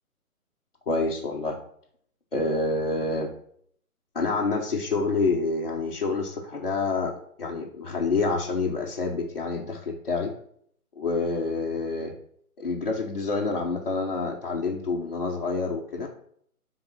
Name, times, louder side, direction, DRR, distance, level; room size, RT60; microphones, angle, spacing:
voice 1, 0.9-1.6 2.3-3.3 4.1-10.3 11.0-12.1 12.6-16.1, left 3 dB, 40° left, -4 dB, 1.1 m, -27 dB
11.5 x 3.9 x 6.2 m, 0.66 s
hypercardioid pair, 170°, 44 cm